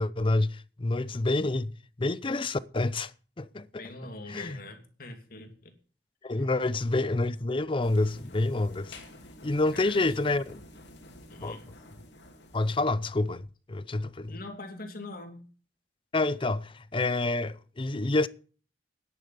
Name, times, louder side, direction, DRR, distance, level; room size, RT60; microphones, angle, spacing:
voice 1, 0.0-1.7 2.0-3.1 3.4-3.7 4.3-4.6 6.2-9.0 9.4-10.6 11.4-11.6 12.5-14.4 16.1-18.3, left 2 dB, 30° left, 0.6 m, -28 dB
voice 2, 3.8-5.7 9.7-10.0 11.3-11.6 14.3-15.5, left 2 dB, 55° left, 2.7 m, -43 dB
sound 1, 7.8-12.8, left 1 dB, 85° left, 2.9 m, -50 dB
10.5 x 9.9 x 7.0 m
head